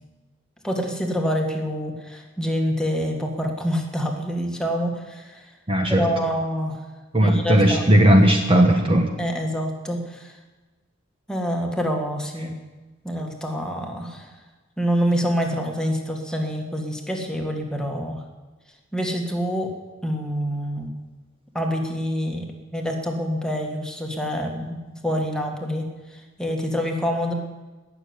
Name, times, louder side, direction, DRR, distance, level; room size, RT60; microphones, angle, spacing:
voice 1, 0.6-5.5 5.9-6.8 7.2-7.9 9.2-10.4 11.3-12.6 13.0-14.3 14.8-18.2 18.9-19.7 20.0-20.9 21.5-22.5 22.7-27.3, equal, 5° left, 1 dB, 1.9 m, -26 dB
voice 2, 5.7-6.0 7.1-9.1, right 1 dB, 25° right, 3 dB, 1.2 m, -17 dB
18.0 x 7.0 x 9.7 m, 1.2 s
head